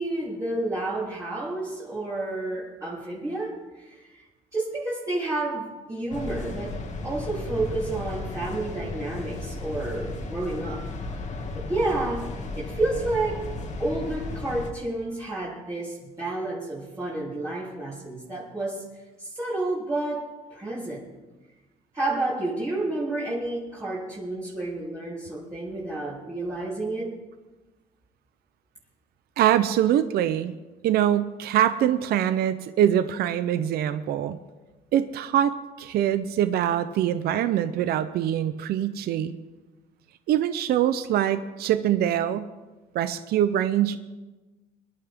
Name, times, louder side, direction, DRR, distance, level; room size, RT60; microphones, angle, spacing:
voice 1, 0.0-4.2 4.5-10.9 11.5-18.8 19.2-21.1 21.9-27.2, right 2 dB, 20° right, -9 dB, 3.5 m, -30 dB
sound 1, 6.1-14.7, left 2 dB, 45° left, 2.2 m, -34 dB
voice 2, 29.4-30.5 30.8-34.4 34.9-39.3 40.3-42.5 42.9-44.0, right 11 dB, 70° right, 12 dB, 0.7 m, -24 dB
24.5 x 11.5 x 3.7 m, 1.2 s
cardioid pair, 110°, 17 cm